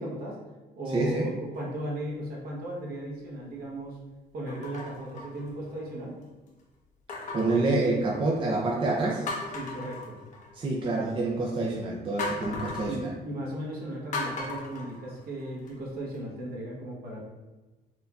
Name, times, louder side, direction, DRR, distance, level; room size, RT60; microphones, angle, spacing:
voice 1, 0.0-0.4 0.8-4.0 4.3-6.2 9.5-10.2 12.9-17.2, right 1 dB, 65° right, -3 dB, 1.1 m, -36 dB
voice 2, 0.9-1.3 7.3-9.3 10.5-13.1, right 2 dB, 30° right, -3 dB, 0.5 m, -27 dB
sound 1, 1.5-2.0 2.7-2.8 4.5-5.9 7.1-8.4 8.9-9.0 9.3-10.7 12.2-12.9 14.1-15.7 16.1-16.2, left 3 dB, 45° left, 0.8 m, -37 dB
4.3 x 2.7 x 2.3 m, 1.2 s
cardioid pair, 110°, 17 cm